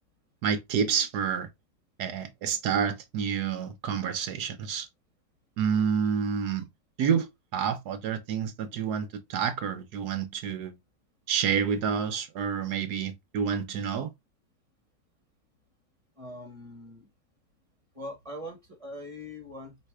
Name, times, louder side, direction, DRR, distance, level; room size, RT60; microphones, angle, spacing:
voice 1, 0.4-1.5 2.0-4.9 5.6-6.7 7.0-10.7 11.3-14.1, right 7 dB, 70° right, 1.1 m, -29 dB
voice 2, 16.2-17.1 17.9-19.8, left 1 dB, 20° right, 1.6 m, -42 dB
3.3 x 3.1 x 4.7 m
omnidirectional pair, 2.0 m